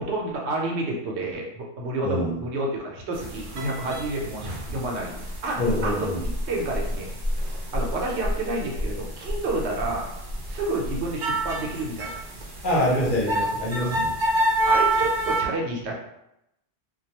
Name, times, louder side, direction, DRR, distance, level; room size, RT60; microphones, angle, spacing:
voice 1, 0.0-6.1 6.5-7.2 7.7-10.1 10.5-12.1 13.0-13.1 13.8-14.0 14.7-15.9, right 2 dB, 90° right, -1 dB, 0.9 m, -29 dB
voice 2, 2.0-2.4 5.6-6.2 12.6-14.1, left 1 dB, 55° left, -4 dB, 0.8 m, -25 dB
sound 1, 3.1-15.4, right 1 dB, 60° right, 0.7 m, -28 dB
2.2 x 2.2 x 2.9 m, 0.83 s
omnidirectional pair, 1.1 m